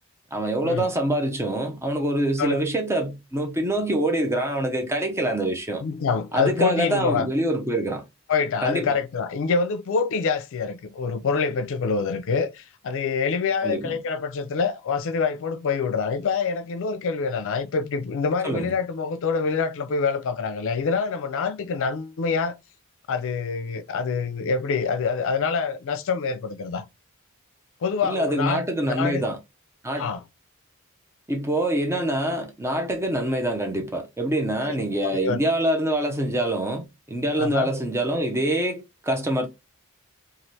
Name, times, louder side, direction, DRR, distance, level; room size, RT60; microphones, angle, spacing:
voice 1, 0.3-5.8 6.3-8.0 8.6-9.0 13.6-13.9 18.4-18.7 28.0-29.4 29.8-30.1 31.3-39.5, right 1 dB, 10° right, 0.5 m, -25 dB
voice 2, 5.8-7.3 8.3-22.5 23.1-26.8 27.8-29.2 30.0-30.2 34.6-35.4 37.4-37.7, left 5 dB, 65° left, 0.4 m, -26 dB
3.1 x 2.5 x 2.7 m
head